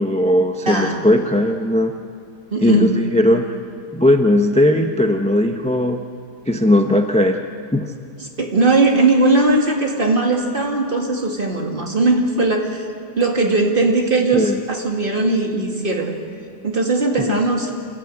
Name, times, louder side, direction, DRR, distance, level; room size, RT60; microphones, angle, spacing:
voice 1, 0.0-1.9 2.6-3.5 3.9-6.0 6.5-7.4 7.7-7.9 14.3-14.6 17.2-17.4, left 1 dB, 10° left, 5 dB, 0.5 m, -17 dB
voice 2, 0.7-1.1 2.5-3.0 8.4-12.8 13.2-16.2 16.6-17.7, right 3 dB, 30° right, 1 dB, 2.4 m, -19 dB
27.5 x 15.0 x 8.9 m, 2.3 s
omnidirectional pair, 1.8 m